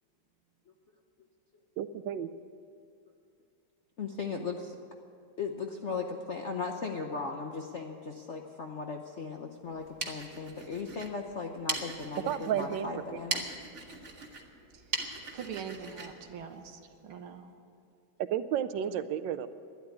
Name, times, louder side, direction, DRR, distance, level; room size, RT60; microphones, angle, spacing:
voice 1, 1.8-2.3 12.3-13.2 18.2-19.5, right 9 dB, 70° right, 13 dB, 1.2 m, -32 dB
voice 2, 4.0-4.8 5.4-13.5, left 4 dB, 60° left, 3 dB, 0.7 m, -37 dB
sound 1, 9.7-17.2, right 3 dB, 40° right, 1.6 m, -40 dB
voice 3, 14.7-17.5, right 7 dB, 90° right, 6 dB, 2.0 m, -43 dB
12.5 x 10.5 x 9.5 m, 2.3 s
omnidirectional pair, 2.2 m